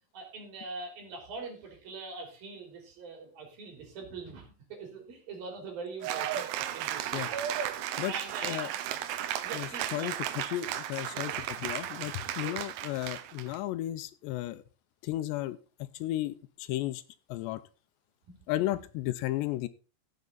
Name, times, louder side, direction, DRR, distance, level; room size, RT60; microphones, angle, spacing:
voice 1, 0.1-7.4 7.9-8.8 9.4-10.2 11.1-11.5 12.4-12.6 18.3-18.5, right 3 dB, 55° right, 3 dB, 5.1 m, -43 dB
Cheering / Applause, 6.0-13.6, right 11 dB, 75° right, 2.4 m, -35 dB
voice 2, 9.5-14.6 15.0-15.6 15.9-17.0 17.3-17.6 18.5-19.7, left 15 dB, 80° left, 14 dB, 2.8 m, -34 dB
16.0 x 7.4 x 3.9 m, 0.33 s
omnidirectional pair, 5.0 m